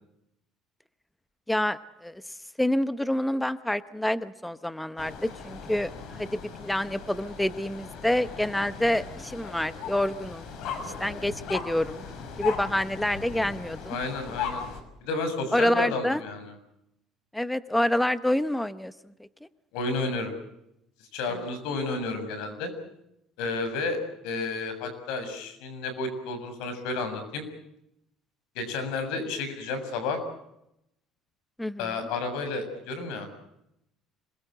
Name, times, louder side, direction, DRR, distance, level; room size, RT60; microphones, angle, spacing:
voice 1, 1.5-2.2 2.6-10.5 10.8-12.0 12.4-14.0 15.5-16.2 17.3-18.9 31.6-31.9, left 1 dB, 5° left, 13 dB, 0.8 m, -27 dB
sound 1, 5.0-14.8, left 6 dB, 65° left, 5.8 m, -38 dB
voice 2, 13.9-14.6 15.0-16.5 19.7-20.3 21.1-22.7 23.4-27.5 28.6-30.2 31.8-33.3, left 3 dB, 85° left, 9 dB, 7.0 m, -31 dB
26.5 x 21.5 x 7.8 m, 0.82 s
cardioid pair, 130°, 0 cm